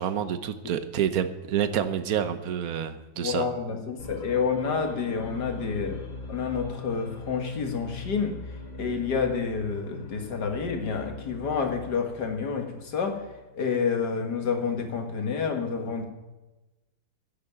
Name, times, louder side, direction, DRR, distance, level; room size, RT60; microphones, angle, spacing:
voice 1, 0.0-3.5, right 9 dB, 55° right, 11 dB, 1.2 m, -28 dB
voice 2, 3.2-6.0 6.3-8.4 8.8-13.2 13.5-16.1, left 5 dB, 60° left, 5 dB, 2.1 m, -29 dB
sound 1, 4.0-13.6, left 3 dB, 80° left, 3.2 m, -41 dB
10.5 x 8.1 x 10.0 m, 1.1 s
omnidirectional pair, 2.1 m